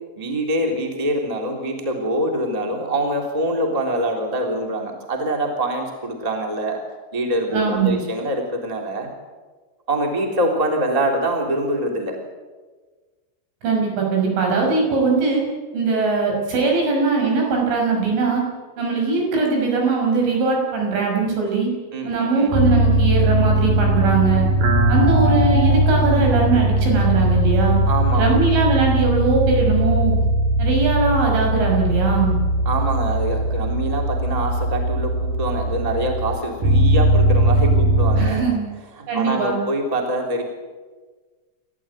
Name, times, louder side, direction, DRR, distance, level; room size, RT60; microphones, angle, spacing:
voice 1, 0.2-6.8 7.1-9.1 9.9-12.2 21.9-22.6 27.9-28.4 32.6-38.4 38.9-40.4, right 1 dB, 10° right, 2 dB, 2.7 m, -24 dB
voice 2, 7.5-8.0 13.6-15.4 15.7-18.4 18.8-21.7 22.1-24.5 24.9-27.8 28.1-30.1 30.6-32.4 38.2-38.6 39.1-39.6, right 4 dB, 65° right, 0 dB, 8.4 m, -20 dB
sound 1, 22.5-38.3, right 1 dB, 45° right, 4.1 m, -19 dB
29.5 x 14.5 x 9.3 m, 1.4 s
omnidirectional pair, 5.9 m